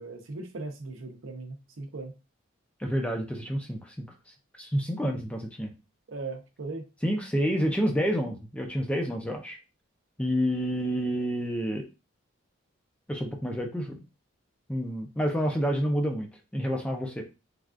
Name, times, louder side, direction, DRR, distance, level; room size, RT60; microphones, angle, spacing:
voice 1, 0.0-2.2 6.1-6.9, right 3 dB, 70° right, 5 dB, 0.6 m, -38 dB
voice 2, 2.8-4.1 4.6-5.7 7.0-9.6 10.2-11.9 13.1-14.0 14.7-17.3, equal, 5° left, 2 dB, 0.4 m, -29 dB
3.4 x 2.3 x 2.4 m, 0.29 s
head